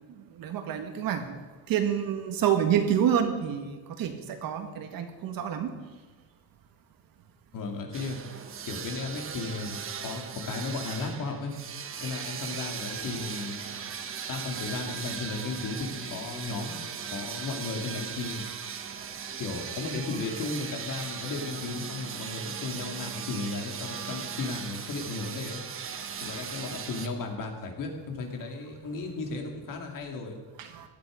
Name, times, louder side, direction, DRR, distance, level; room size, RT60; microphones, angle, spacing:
voice 1, 0.4-1.4 1.7-5.7 30.6-30.9, right 9 dB, 60° right, 6 dB, 1.8 m, -28 dB
voice 2, 7.5-8.2 8.7-11.5 12.0-13.6 14.3-16.8 17.1-18.4 19.4-25.6 26.2-30.4, left 3 dB, 55° left, 3 dB, 2.6 m, -35 dB
sound 1, 7.9-27.1, right 7 dB, 35° right, 1.1 m, -38 dB
17.0 x 11.0 x 5.2 m, 1.3 s
cardioid pair, 155°, 38 cm